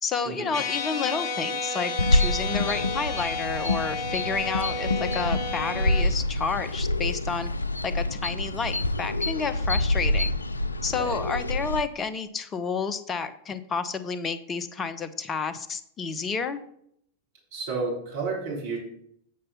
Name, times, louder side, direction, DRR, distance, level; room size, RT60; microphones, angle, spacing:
voice 1, 0.0-7.5 7.8-10.3 10.8-16.6, left 5 dB, 20° left, 12 dB, 0.8 m, -30 dB
sound 1, 0.5-6.0, left 3 dB, 40° left, 1.2 m, -32 dB
sound 2, 2.0-11.8, left 1 dB, 80° left, 0.4 m, -27 dB
voice 2, 17.5-18.8, right 4 dB, 55° right, -2 dB, 3.4 m, -31 dB
8.5 x 5.4 x 5.6 m, 0.69 s
figure-of-eight pair, 90°, 0 cm